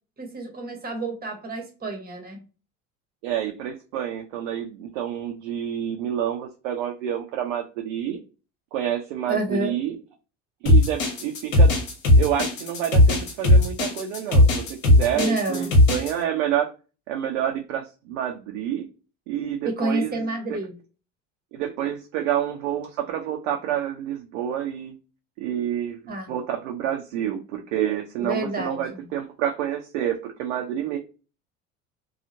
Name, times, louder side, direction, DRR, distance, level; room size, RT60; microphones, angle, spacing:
voice 1, 0.2-2.4 9.3-9.7 15.1-15.7 19.6-20.7 26.1-26.3 28.2-29.0, right 2 dB, 25° right, 4 dB, 1.1 m, -29 dB
voice 2, 3.2-8.2 8.7-10.0 10.6-11.7 12.1-16.7 17.1-18.9 19.3-20.2 20.5-20.6 21.5-25.0 25.4-31.0, right 10 dB, 65° right, 2 dB, 0.6 m, -28 dB
sound 1, 10.7-16.1, left 1 dB, 60° left, 1.3 m, -17 dB
2.8 x 2.4 x 2.6 m, 0.33 s
figure-of-eight pair, 70°, 40 cm